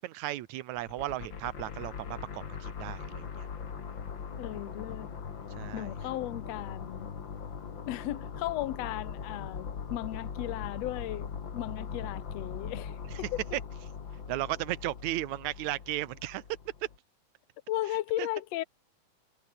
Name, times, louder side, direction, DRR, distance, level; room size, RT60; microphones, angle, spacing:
voice 1, 0.0-3.5 5.6-6.2 13.1-13.2 13.5-13.6 14.3-16.4 18.2-18.3, right 15 dB, 75° right, 2.3 m, -35 dB
sound 1, 0.8-17.0, left 6 dB, 40° left, 2.6 m, -41 dB
voice 2, 4.4-5.1 5.7-7.1 7.8-11.3 11.5-13.4 17.7-18.6, left 15 dB, 65° left, 2.1 m, -36 dB
omnidirectional pair, 3.5 m